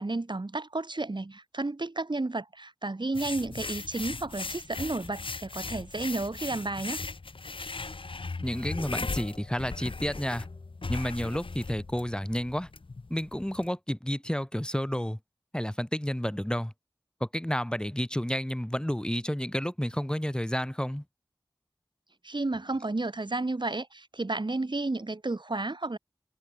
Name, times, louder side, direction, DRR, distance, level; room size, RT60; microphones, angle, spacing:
voice 1, 0.0-7.0 22.2-26.0, right 2 dB, 65° right, 6.3 m, -32 dB
sound 1, 3.1-13.7, left 3 dB, 90° left, 1.8 m, -38 dB
voice 2, 8.4-10.5 10.9-12.7 13.1-15.2 15.5-16.7 17.2-21.0, equal, 10° left, 2.9 m, -31 dB
wide cardioid pair, 45°, 9 cm